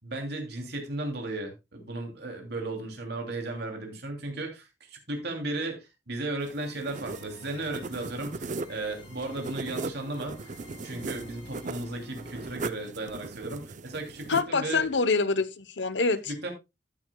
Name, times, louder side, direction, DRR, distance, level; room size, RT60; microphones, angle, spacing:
voice 1, 0.0-14.8 16.3-16.5, right 2 dB, 65° right, 2.9 m, -35 dB
sound 1, 6.4-14.4, right 3 dB, 45° right, 0.5 m, -39 dB
sound 2, 6.9-12.6, left 1 dB, 30° left, 6.9 m, -50 dB
voice 2, 14.3-16.3, left 4 dB, 75° left, 0.8 m, -26 dB
13.5 x 9.3 x 2.2 m
head